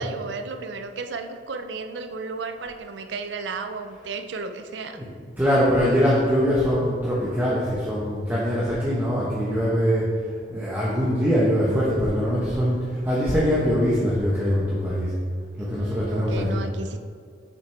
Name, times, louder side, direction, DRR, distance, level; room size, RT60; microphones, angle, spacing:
voice 1, 0.0-5.0 15.6-17.0, right 4 dB, 85° right, 7 dB, 0.5 m, -34 dB
voice 2, 5.4-10.1 10.5-12.8 13.0-15.1 15.6-16.4, equal, 10° right, -7 dB, 0.9 m, -22 dB
6.8 x 5.8 x 3.3 m, 2.1 s
head